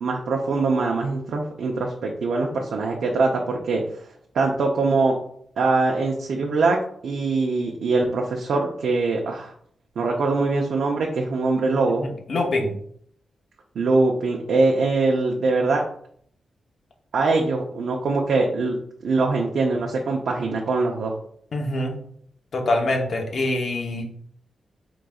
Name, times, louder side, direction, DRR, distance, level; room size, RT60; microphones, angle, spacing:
voice 1, 0.0-4.0 4.3-5.2 5.6-9.5 10.0-12.1 13.7-15.8 17.1-18.8 19.0-21.1, right 3 dB, 75° right, 0 dB, 0.6 m, -22 dB
voice 2, 12.0-12.7 21.5-22.0 22.5-24.1, left 2 dB, 55° left, 2 dB, 0.9 m, -24 dB
4.8 x 3.8 x 2.3 m, 0.64 s
wide cardioid pair, 110°, 0 cm